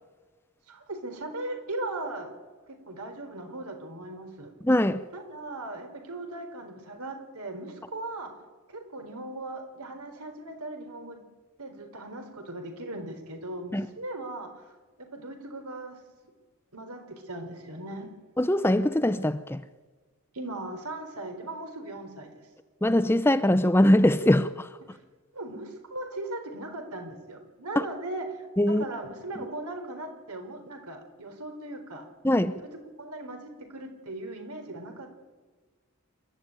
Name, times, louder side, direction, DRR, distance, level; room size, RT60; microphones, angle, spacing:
voice 1, 0.7-2.3 2.7-4.5 5.1-8.3 8.7-11.2 11.6-14.6 15.0-16.0 16.7-18.1 20.3-22.5 24.9-25.0 25.3-32.1 33.0-35.1, right 2 dB, 90° right, 4.2 m, -38 dB
voice 2, 4.6-5.0 13.7-13.9 18.4-19.6 22.8-24.7 27.8-27.9 28.6-28.8 32.2-32.6, left 1 dB, 10° left, 0.6 m, -22 dB
28.0 x 13.0 x 9.1 m
head